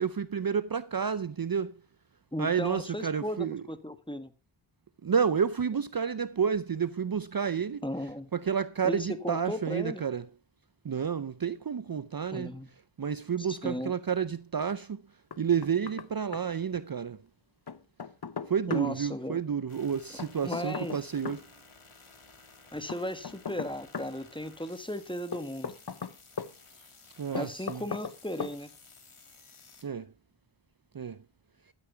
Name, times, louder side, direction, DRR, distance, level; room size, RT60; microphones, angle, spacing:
voice 1, 0.0-1.7 2.4-3.6 5.0-7.8 8.3-10.3 10.8-12.6 13.0-15.0 15.4-17.2 18.5-21.4 27.2-27.8 29.8-30.1 30.9-31.2, right 7 dB, 45° right, 0.6 m, -30 dB
voice 2, 2.3-4.3 7.8-8.3 8.8-10.0 12.3-12.7 13.4-13.9 18.7-19.4 20.4-21.0 22.7-25.7 27.3-28.7, left 1 dB, 10° left, 1.4 m, -36 dB
Knock, 15.3-16.1 16.3-16.4 17.7-18.9 20.2-21.4 22.9-24.1 25.3-26.5 27.3-28.1 28.4-28.6, left 6 dB, 50° left, 0.8 m, -37 dB
sound 1, 19.7-29.8, left 4 dB, 90° left, 1.9 m, -55 dB
12.0 x 9.5 x 4.5 m
wide cardioid pair, 45°, 49 cm